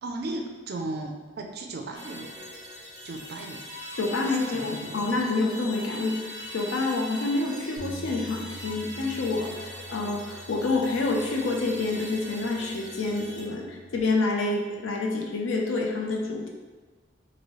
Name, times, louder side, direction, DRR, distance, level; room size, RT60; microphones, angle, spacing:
voice 1, 0.0-2.3 3.0-3.6 4.2-5.0, right 2 dB, 55° right, 3 dB, 0.3 m, -36 dB
sound 1, 1.9-13.4, equal, 35° left, 0.6 m, -43 dB
Bowed string instrument, 3.7-8.7, left 1 dB, 15° right, 0.7 m, -44 dB
voice 2, 4.0-16.5, left 3 dB, 80° left, 1 dB, 0.5 m, -28 dB
Bass guitar, 7.8-14.0, equal, 65° left, 1.1 m, -47 dB
3.0 x 2.6 x 2.9 m, 1.3 s
head